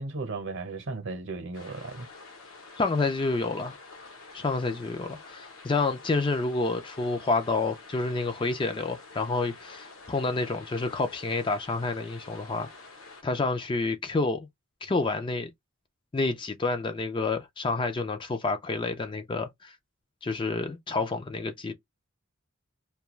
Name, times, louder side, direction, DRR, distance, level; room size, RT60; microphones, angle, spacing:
voice 1, 0.0-2.1, right 3 dB, 60° right, 0.8 m, -35 dB
sound 1, 1.5-13.2, left 3 dB, 75° left, 0.9 m, -48 dB
voice 2, 2.8-3.7 4.3-12.7 13.2-14.5 14.8-15.5 16.1-19.7 20.2-21.7, left 3 dB, 25° left, 0.3 m, -29 dB
2.3 x 2.3 x 2.9 m
head